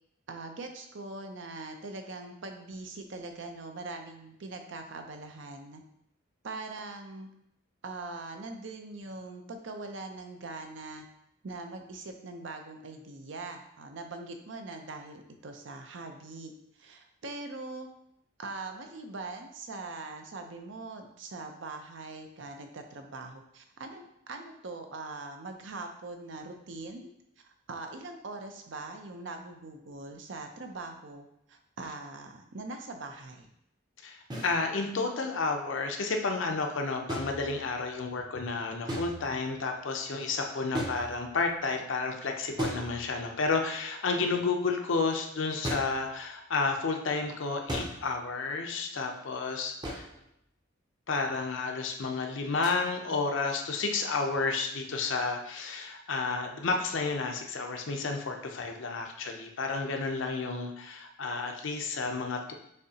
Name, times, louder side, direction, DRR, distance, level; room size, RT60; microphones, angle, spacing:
voice 1, 0.3-5.8 6.4-7.3 7.8-11.1 11.4-16.5 16.8-17.9 18.4-33.5, right 3 dB, 60° right, 5 dB, 0.5 m, -42 dB
voice 2, 34.0-50.1 51.1-62.5, left 4 dB, 70° left, 3 dB, 0.6 m, -31 dB
sound 1, 34.3-34.6 37.1-37.9 38.9-39.5 40.7-41.5 42.6-43.4 45.6-46.1 47.7-48.2 49.8-50.3 52.6-52.8, equal, 20° right, 0.6 m, -37 dB
6.5 x 2.7 x 2.8 m, 0.78 s
head